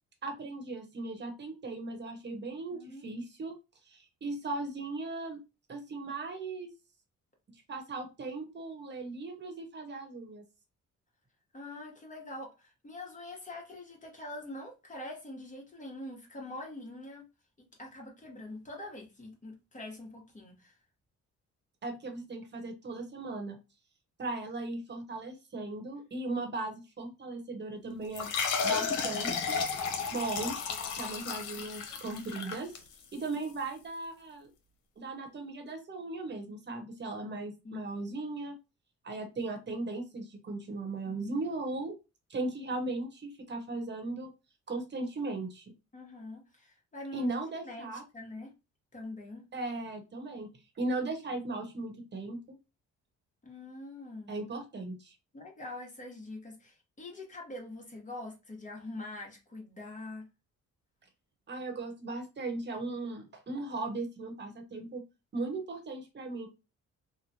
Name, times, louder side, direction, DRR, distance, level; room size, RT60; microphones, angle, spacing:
voice 1, 0.2-3.6 3.9-5.4 5.7-6.7 7.7-10.4 21.8-23.6 24.2-28.3 28.6-30.5 31.0-32.7 33.1-34.5 35.0-38.6 39.0-41.9 42.3-44.3 44.7-45.7 47.1-48.0 49.5-50.5 50.8-52.6 54.3-55.1 61.5-65.0 65.3-66.5, right 2 dB, 35° right, 1.0 m, -37 dB
voice 2, 2.7-3.1 11.5-17.2 17.6-20.8 37.6-37.9 41.1-41.4 45.9-47.3 47.6-47.9 48.1-48.5 48.9-49.5 53.4-54.3 55.3-60.3, left 2 dB, 25° left, 1.0 m, -44 dB
sound 1, 28.1-33.3, left 5 dB, 85° left, 0.7 m, -33 dB
3.1 x 2.1 x 2.7 m
cardioid pair, 90°, 30 cm